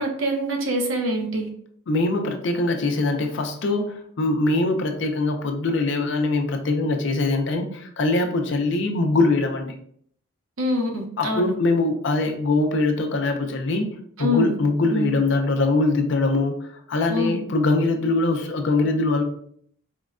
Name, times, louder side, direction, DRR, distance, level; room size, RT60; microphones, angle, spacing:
voice 1, 0.0-1.5 10.6-11.5 14.2-14.6 14.9-15.1 17.1-17.4, equal, 70° right, 2 dB, 0.7 m, -25 dB
voice 2, 1.9-9.7 11.2-19.2, left 2 dB, 60° left, 5 dB, 0.4 m, -22 dB
4.3 x 2.1 x 2.4 m, 0.64 s
head